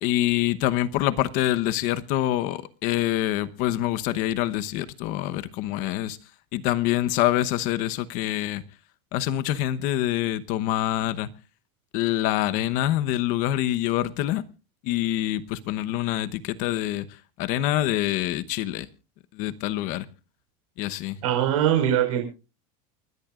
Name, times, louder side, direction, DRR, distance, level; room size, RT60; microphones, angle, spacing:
voice 1, 0.0-6.2 6.5-8.6 9.1-11.3 11.9-14.4 14.8-17.1 17.4-18.9 19.3-20.1 20.8-21.2, left 14 dB, 50° left, 1.0 m, -25 dB
voice 2, 21.2-22.2, right 10 dB, 85° right, 5.2 m, -22 dB
29.0 x 12.0 x 2.5 m
supercardioid pair, 150°, 17 cm